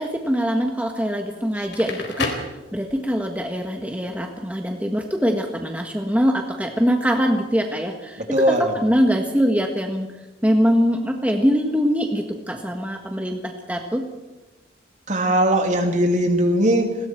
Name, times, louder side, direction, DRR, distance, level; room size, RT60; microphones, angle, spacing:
voice 1, 0.0-2.3 2.7-10.1 10.4-14.0, equal, 10° right, 2 dB, 1.6 m, -23 dB
Crackle, 1.6-3.3, left 3 dB, 65° left, 3.9 m, -30 dB
voice 2, 8.3-8.7 15.1-17.0, right 1 dB, 40° right, 4 dB, 2.9 m, -19 dB
30.0 x 21.5 x 4.6 m, 1.1 s
head